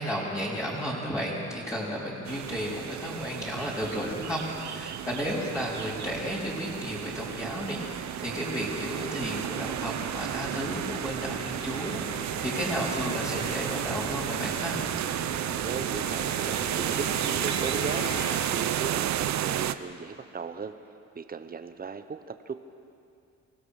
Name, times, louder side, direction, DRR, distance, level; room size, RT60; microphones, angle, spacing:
voice 1, 0.0-14.8, equal, 10° left, -7 dB, 4.0 m, -33 dB
sound 1, 2.3-19.7, right 11 dB, 65° right, 0.7 m, -32 dB
sound 2, 9.6-18.4, left 2 dB, 55° left, 6.5 m, -40 dB
voice 2, 15.6-18.1 18.4-20.7 21.1-22.5, right 5 dB, 30° right, 9 dB, 1.1 m, -37 dB
24.5 x 16.0 x 6.6 m, 2.5 s
cardioid pair, 90°, 30 cm